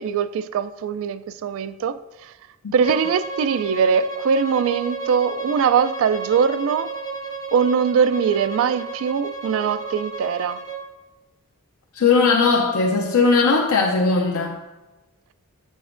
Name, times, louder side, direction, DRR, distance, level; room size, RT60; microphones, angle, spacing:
voice 1, 0.0-2.3 2.7-6.9 7.5-10.6, right 6 dB, 65° right, 0.3 m, -21 dB
Bowed string instrument, 2.8-10.8, right 4 dB, 20° left, 0.5 m, -32 dB
voice 2, 11.9-14.6, left 4 dB, 75° left, 0.6 m, -18 dB
7.6 x 6.3 x 2.5 m
head